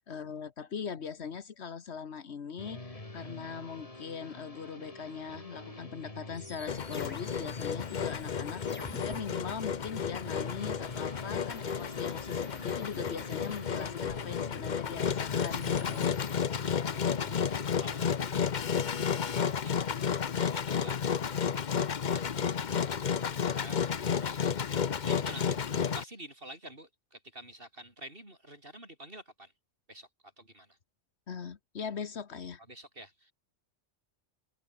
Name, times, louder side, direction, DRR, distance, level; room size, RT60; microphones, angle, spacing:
voice 1, 0.1-16.1 31.3-32.6, left 6 dB, 65° left, 1.4 m, -41 dB
sound 1, 2.6-18.2, left 2 dB, 30° left, 2.8 m, -46 dB
sound 2, 6.4-9.2 11.5-14.3 15.1-16.4, left 1 dB, 10° left, 1.3 m, -51 dB
Engine, 6.7-26.0, left 7 dB, 45° left, 0.8 m, -32 dB
voice 2, 16.6-20.0 20.3-25.6 25.9-29.5 29.9-30.8 32.7-33.3, right 1 dB, 50° right, 7.9 m, -51 dB
omnidirectional pair, 1.2 m